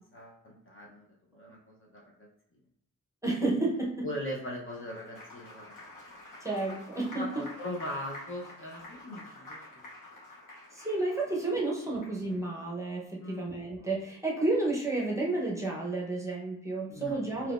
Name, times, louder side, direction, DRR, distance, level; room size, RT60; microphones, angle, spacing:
voice 1, 0.1-2.3 4.0-5.8 7.1-9.8 13.2-13.6 16.9-17.5, equal, 35° left, -2 dB, 0.7 m, -40 dB
voice 2, 3.2-4.1 6.4-7.4 10.7-17.5, right 2 dB, 10° right, -4 dB, 0.8 m, -31 dB
Applause, 4.5-12.4, left 2 dB, 65° left, 1.3 m, -49 dB
4.0 x 2.8 x 2.4 m, 0.75 s
wide cardioid pair, 120°, 34 cm